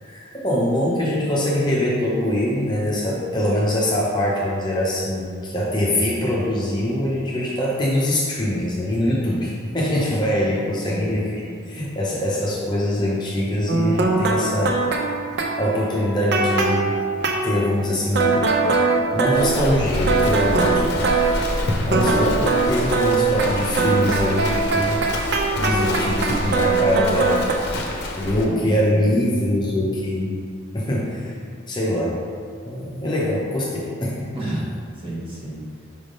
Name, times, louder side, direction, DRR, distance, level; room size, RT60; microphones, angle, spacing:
voice 1, 0.0-11.4 11.7-14.8 15.6-16.9 17.4-18.5 19.1-21.1 21.4-21.6 21.8-25.0 25.6-27.4 28.2-30.4 30.7-31.3 31.7-32.2 32.6-34.3, left 1 dB, 20° left, -5 dB, 0.7 m, -23 dB
voice 2, 10.8-11.4 28.4-28.7 34.3-35.9, right 1 dB, 25° right, -6 dB, 1.2 m, -31 dB
sound 1, 13.7-17.6 18.1-21.6 21.9-27.5, right 3 dB, 55° right, 0.5 m, -21 dB
Livestock farm animals working animals, 19.3-28.4, left 1 dB, 55° left, 0.7 m, -28 dB
5.2 x 3.4 x 5.2 m, 2.1 s
head